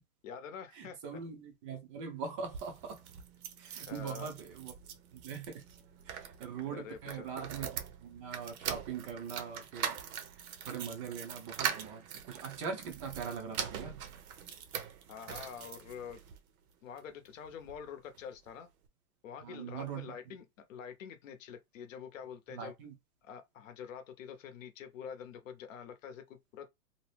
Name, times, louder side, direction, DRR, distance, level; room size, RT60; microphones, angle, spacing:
voice 1, 0.2-1.0 3.9-4.3 6.7-7.3 15.1-16.2 16.8-18.7 19.2-22.7 23.2-26.7, left 7 dB, 60° left, 0.8 m, -46 dB
voice 2, 0.7-3.0 3.6-4.7 5.1-5.6 6.1-9.9 10.6-14.0 19.4-20.1 22.5-22.9, right 6 dB, 25° right, 0.4 m, -42 dB
sound 1, 2.4-16.4 17.0-17.8 18.1-18.2 18.5-18.6, right 8 dB, 70° right, 0.8 m, -42 dB
2.7 x 2.0 x 3.2 m
hypercardioid pair, 140°, 44 cm